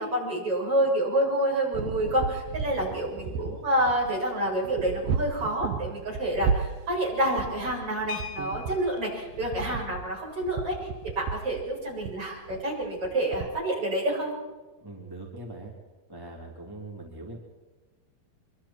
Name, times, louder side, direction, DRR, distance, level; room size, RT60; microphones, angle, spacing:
voice 1, 0.0-10.9 11.2-14.3, right 1 dB, 35° right, -2 dB, 7.6 m, -28 dB
sound 1, 1.7-13.5, right 6 dB, 75° right, 2.7 m, -34 dB
voice 2, 2.6-3.6 14.8-15.7 16.1-17.4, right 2 dB, 5° right, -2 dB, 2.8 m, -42 dB
sound 2, 8.1-9.2 10.6-10.7 11.1-11.3 11.6-11.9, left 9 dB, 20° left, 3.5 m, -41 dB
25.5 x 25.0 x 4.5 m, 1.2 s
omnidirectional pair, 4.6 m